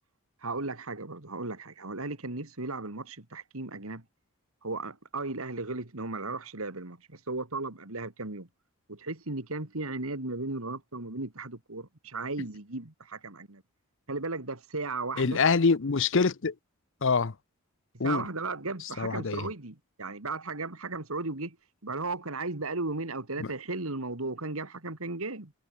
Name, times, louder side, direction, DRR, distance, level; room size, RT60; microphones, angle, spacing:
voice 1, 0.4-4.0 4.6-8.5 8.9-13.6 14.1-15.4 18.0-21.6 21.8-25.5, right 3 dB, 75° right, 2.5 m, -35 dB
voice 2, 15.2-16.5 17.0-17.3 18.0-18.2 19.0-19.5 23.4-23.5, left 4 dB, 55° left, 0.7 m, -25 dB
head